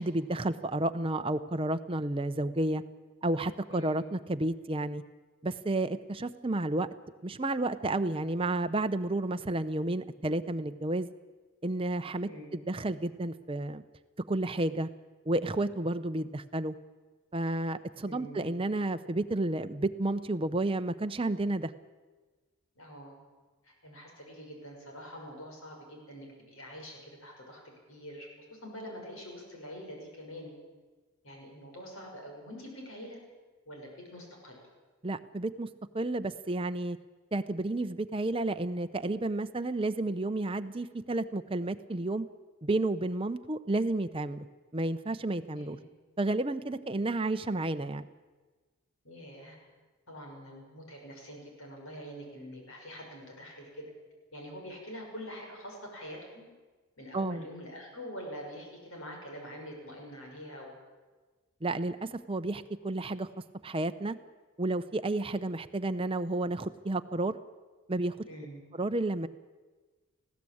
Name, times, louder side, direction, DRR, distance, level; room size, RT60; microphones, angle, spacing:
voice 1, 0.0-2.8 3.2-5.0 5.4-6.9 7.2-11.1 11.6-13.8 14.3-14.9 15.3-16.7 17.3-21.7 35.0-35.7 35.9-37.0 37.3-42.3 42.6-44.5 44.7-45.8 46.2-48.0 57.1-57.4 61.6-63.3 63.6-64.2 64.6-67.4 67.9-68.3 68.7-69.3, right 2 dB, 25° right, 10 dB, 0.7 m, -31 dB
voice 2, 3.7-4.1 12.2-12.5 18.0-18.6 22.8-23.1 23.6-30.5 31.2-33.2 33.7-34.6 45.5-45.8 49.0-49.6 50.1-53.9 54.3-56.5 57.0-60.7 68.2-68.6, equal, 65° left, 1 dB, 5.9 m, -45 dB
19.5 x 15.5 x 8.6 m, 1.3 s
head